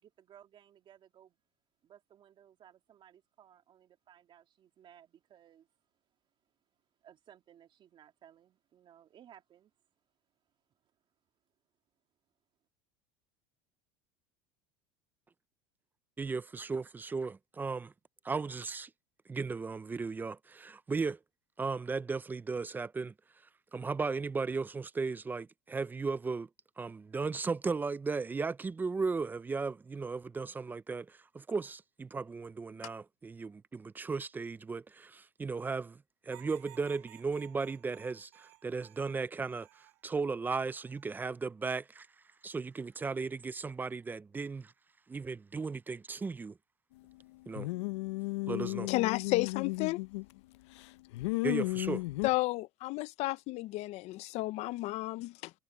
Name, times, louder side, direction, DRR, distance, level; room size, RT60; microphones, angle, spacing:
voice 1, 0.0-1.4 1.8-5.7 7.0-9.7 10.8-10.9, right 10 dB, 35° right, 2.8 m, -59 dB
voice 2, 16.2-17.9 18.2-18.9 19.3-21.2 21.6-23.1 23.7-26.5 26.8-42.1 42.4-44.7 45.1-46.6 47.5-47.7 48.5-48.9 51.4-52.0, right 4 dB, 15° right, 0.5 m, -36 dB
sound 1, 36.3-40.0 40.5-41.3 42.6-43.1, right 29 dB, 75° right, 4.4 m, -58 dB
sound 2, 47.5-50.4 50.8-52.3, left 23 dB, 90° left, 0.6 m, -34 dB
voice 3, 48.9-50.0 52.2-55.5, left 20 dB, 50° left, 0.6 m, -32 dB
supercardioid pair, 135°, 14 cm